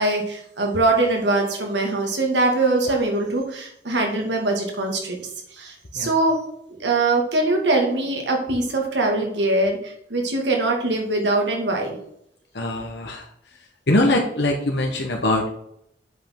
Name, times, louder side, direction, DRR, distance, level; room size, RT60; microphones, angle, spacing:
voice 1, 0.0-6.3 6.7-12.0, right 2 dB, 85° right, 1 dB, 2.4 m, -22 dB
voice 2, 12.5-13.3 13.9-15.5, left 1 dB, 75° left, 1 dB, 1.2 m, -22 dB
8.1 x 5.4 x 6.0 m, 0.74 s
head